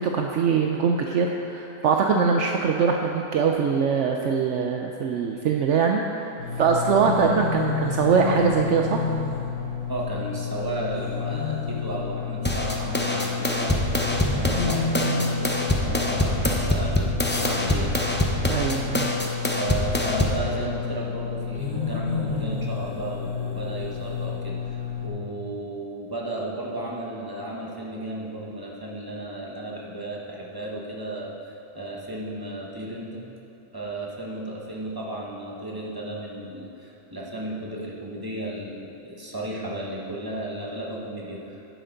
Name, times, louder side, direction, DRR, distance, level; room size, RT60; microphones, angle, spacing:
voice 1, 0.0-6.3 6.6-9.1 18.5-19.1, right 6 dB, 65° right, 2 dB, 0.9 m, -22 dB
sound 1, 6.4-25.1, left 6 dB, 75° left, 1.8 m, -30 dB
voice 2, 9.9-13.9 14.3-18.2 19.5-33.2 33.7-41.6, right 1 dB, 15° right, -3 dB, 1.2 m, -34 dB
sound 2, 12.4-20.4, left 1 dB, 15° left, 0.4 m, -25 dB
11.0 x 9.5 x 3.9 m, 2.8 s
omnidirectional pair, 1.4 m